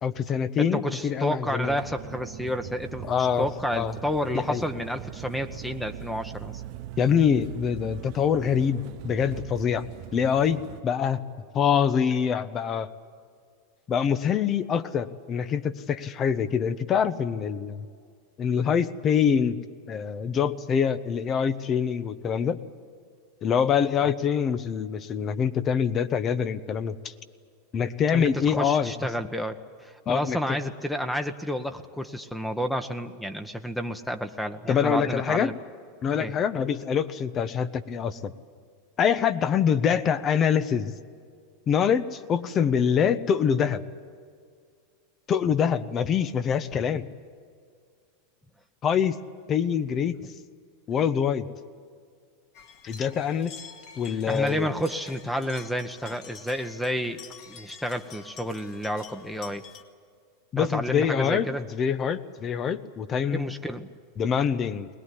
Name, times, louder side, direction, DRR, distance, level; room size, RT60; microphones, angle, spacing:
voice 1, 0.0-1.8 3.0-3.5 3.7-3.9 4.3-4.6 7.0-9.8 10.1-11.2 11.5-12.9 13.9-17.9 18.4-19.6 19.9-22.6 23.4-27.1 27.7-28.9 30.1-30.6 34.7-35.5 36.0-38.3 39.0-40.9 41.7-43.8 45.3-47.1 48.8-49.2 49.5-50.2 50.9-51.5 52.8-53.5 54.0-54.7 60.5-63.5 64.2-64.9, left 7 dB, 35° left, 12 dB, 1.1 m, -25 dB
voice 2, 0.6-6.6 24.0-24.1 28.1-35.5 36.2-36.3 54.3-57.2 57.5-59.6 60.5-61.6 63.3-63.9, equal, 5° left, 8 dB, 1.2 m, -30 dB
sound 1, 1.6-10.8, right 15 dB, 55° right, 0.6 m, -41 dB
sound 2, 52.5-59.8, left 6 dB, 50° left, 2.1 m, -47 dB
22.0 x 20.0 x 9.9 m, 2.1 s
hypercardioid pair, 100°, 0 cm